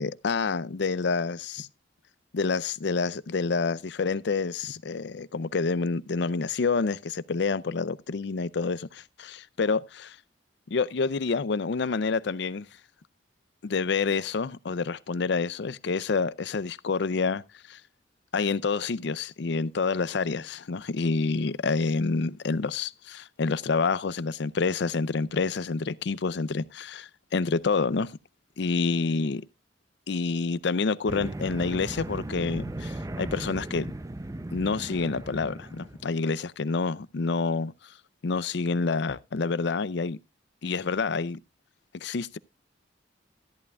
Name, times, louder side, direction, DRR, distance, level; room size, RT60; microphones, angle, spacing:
voice 1, 0.0-1.7 2.3-10.2 10.7-12.7 13.6-17.4 17.7-17.8 18.3-28.1 28.6-29.4 30.1-33.9 34.5-37.9 38.2-40.2 40.6-41.4 41.9-42.4, left 4 dB, 70° left, 0.5 m, -28 dB
sound 1, 31.1-36.1, right 1 dB, 20° right, 0.5 m, -37 dB
13.5 x 11.0 x 2.3 m
head